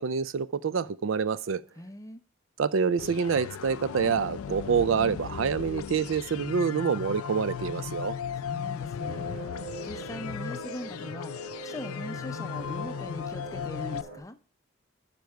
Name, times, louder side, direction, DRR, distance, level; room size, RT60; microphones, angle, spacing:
voice 1, 0.0-1.6 2.6-8.2, right 6 dB, 70° right, 0.4 m, -27 dB
voice 2, 1.8-2.2 8.4-14.4, left 1 dB, 15° left, 0.5 m, -41 dB
sound 1, 3.0-14.0, left 7 dB, 90° left, 0.4 m, -36 dB
sound 2, 9.0-14.2, right 2 dB, 90° right, 3.2 m, -42 dB
9.6 x 5.3 x 4.5 m
head